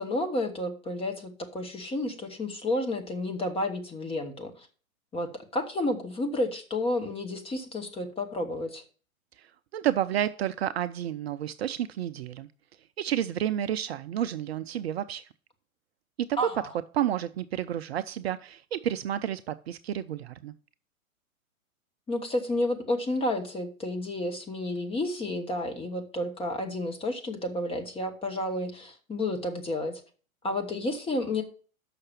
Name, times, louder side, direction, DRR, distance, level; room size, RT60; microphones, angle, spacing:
voice 1, 0.0-4.7 5.1-8.8 16.4-16.7 22.1-30.0 30.4-31.4, left 1 dB, 15° left, 4 dB, 1.3 m, -31 dB
voice 2, 9.4-12.5 13.0-15.3 16.2-16.5 16.9-20.5, right 11 dB, 50° right, 12 dB, 0.5 m, -30 dB
6.5 x 5.9 x 7.2 m, 0.41 s
figure-of-eight pair, 110°, 42 cm